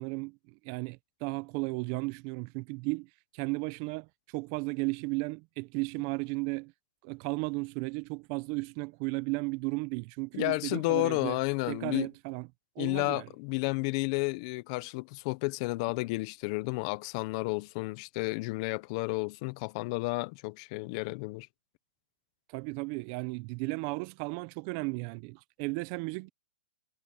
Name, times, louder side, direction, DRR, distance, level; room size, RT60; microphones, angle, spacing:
voice 1, 0.0-3.1 3.3-4.1 4.3-6.7 7.0-11.4 11.7-12.5 12.8-13.3 22.5-26.3, right 27 dB, 35° right, 0.7 m, -34 dB
voice 2, 10.3-12.1 12.8-21.5, left 24 dB, 40° left, 0.8 m, -31 dB
hypercardioid pair, 150°, 5 cm